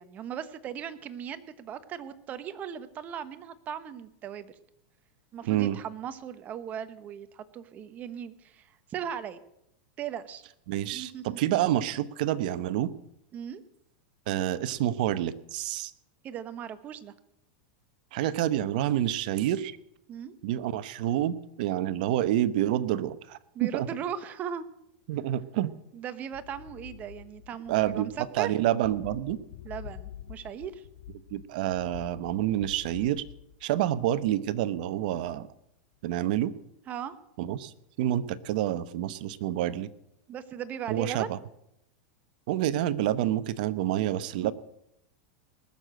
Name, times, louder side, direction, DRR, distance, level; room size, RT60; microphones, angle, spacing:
voice 1, 0.0-4.5 5.3-9.4 10.0-10.4 10.9-11.4 13.3-13.6 16.2-17.1 20.1-20.3 23.5-24.6 25.9-28.5 29.6-30.9 36.9-37.2 40.3-41.4, right 8 dB, 30° right, 13 dB, 1.0 m, -38 dB
voice 2, 5.4-5.8 10.7-12.9 14.3-15.9 18.1-19.8 20.4-23.9 25.1-25.8 27.7-29.4 31.3-33.2 33.6-35.5 36.0-36.5 37.4-39.9 40.9-41.4 42.5-44.5, right 12 dB, 65° right, 15 dB, 0.9 m, -28 dB
sound 1, 26.3-34.3 34.9-35.3, left 11 dB, 70° left, 1.3 m, -47 dB
19.5 x 6.8 x 7.7 m, 0.80 s
hypercardioid pair, 125°, 5 cm